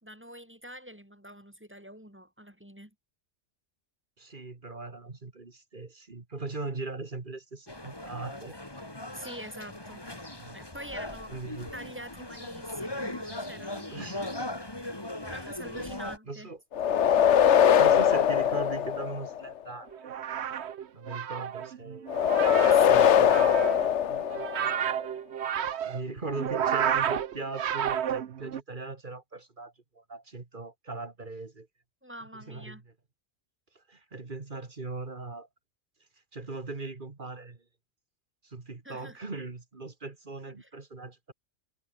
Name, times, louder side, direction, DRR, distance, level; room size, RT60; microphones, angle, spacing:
voice 1, 0.0-2.9 9.1-10.0 10.5-11.4 11.7-13.9 15.2-16.5 22.7-23.3 32.0-32.8 38.8-39.2 40.5-40.7, equal, 10° right, 3.5 m, -45 dB
voice 2, 4.2-8.6 10.4-10.6 11.3-11.7 13.9-14.5 16.3-16.6 17.3-20.2 20.9-22.1 22.8-23.9 25.8-31.7 32.5-32.8 33.8-35.5 36.3-37.6 38.4-41.3, right 3 dB, 45° right, 2.1 m, -40 dB
sound 1, 7.7-16.2, left 1 dB, 20° left, 2.6 m, -39 dB
sound 2, 16.7-19.5 22.1-24.8, left 9 dB, 80° left, 1.2 m, -22 dB
sound 3, 19.9-28.6, right 9 dB, 70° right, 1.1 m, -31 dB
omnidirectional pair, 1.2 m